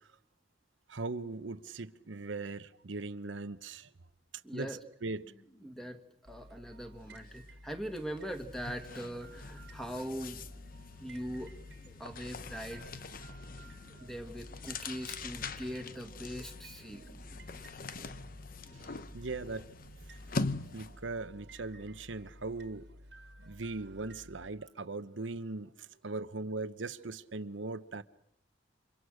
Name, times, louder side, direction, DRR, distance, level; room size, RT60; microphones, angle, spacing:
voice 1, 0.9-3.9 4.5-5.3 19.1-19.7 20.7-22.9 23.4-28.0, right 3 dB, 90° right, 1.0 m, -39 dB
voice 2, 4.4-4.8 5.6-10.4 11.0-11.5 12.0-12.9 14.0-17.1, equal, ahead, 2.1 m, -41 dB
sound 1, 5.0-18.7, equal, 30° left, 5.1 m, -64 dB
sound 2, 6.2-24.5, equal, 65° right, 1.8 m, -54 dB
sound 3, 7.2-7.4 7.7-21.1, left 3 dB, 50° left, 1.0 m, -43 dB
29.5 x 26.5 x 6.5 m
head